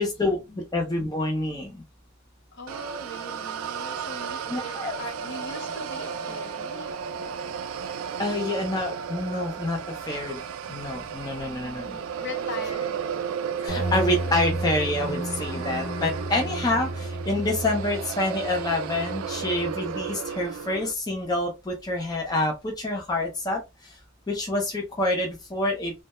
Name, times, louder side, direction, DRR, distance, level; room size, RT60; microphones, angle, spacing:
voice 1, 0.0-0.4 0.7-1.8 4.5-5.0 8.2-9.8 10.1-10.4 10.7-12.0 13.6-23.9 24.3-25.9, left 2 dB, 20° left, 0.4 m, -27 dB
voice 2, 2.5-4.7 5.0-6.9 11.4-13.0, left 2 dB, 60° left, 0.8 m, -40 dB
sound 1, 2.7-20.9, right 7 dB, 80° right, 0.3 m, -34 dB
sound 2, 13.7-20.2, right 1 dB, 85° left, 1.1 m, -33 dB
2.2 x 2.0 x 2.9 m
head